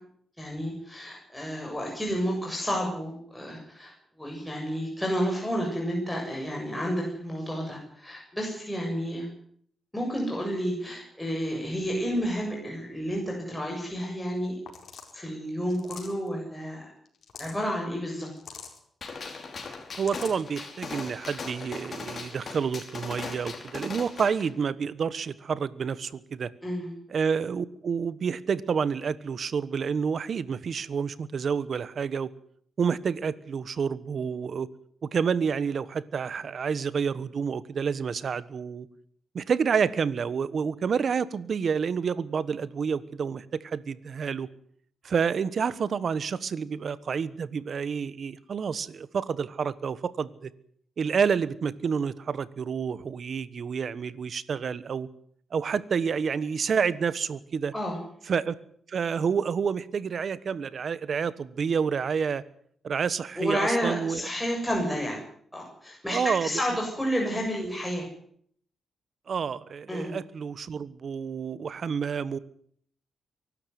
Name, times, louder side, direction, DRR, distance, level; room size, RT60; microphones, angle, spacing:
voice 1, 0.4-9.3 9.9-14.6 15.1-16.9 17.4-18.3 26.6-26.9 57.7-58.0 63.4-65.2 65.5-68.1 69.9-70.1, equal, 5° left, -1 dB, 7.2 m, -30 dB
sound 1, 14.4-14.5 14.7-15.2 15.7-16.3 17.1-17.6 18.3-18.8 19.7-20.4, left 6 dB, 60° left, 4.6 m, -44 dB
Gunshot gunfire, 19.0-24.5, left 4 dB, 45° left, 4.9 m, -39 dB
voice 2, 20.0-26.5 27.1-32.3 32.8-34.7 35.0-38.9 39.3-44.5 45.0-50.5 51.0-55.1 55.5-57.7 58.2-58.6 58.9-62.4 62.8-64.3 66.1-66.8 69.3-72.4, right 6 dB, 55° right, 17 dB, 1.2 m, -29 dB
23.5 x 12.5 x 9.4 m, 0.63 s
cardioid pair, 105°, 0 cm